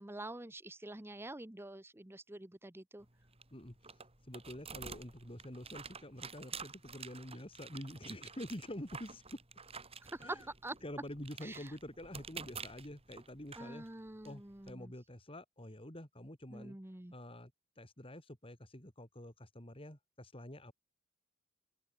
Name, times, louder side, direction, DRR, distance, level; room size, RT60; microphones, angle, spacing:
voice 1, 0.0-3.1 10.0-10.8 11.4-11.7 13.6-14.9 16.5-17.1, right 2 dB, 10° right, 0.8 m, -46 dB
sound 1, 3.0-14.7, right 5 dB, 25° right, 7.2 m, -51 dB
voice 2, 3.5-4.0 4.3-9.4 10.2-10.4 10.8-13.9 14.2-16.8 17.1-17.5 17.8-20.7, left 1 dB, 25° left, 4.3 m, -47 dB
head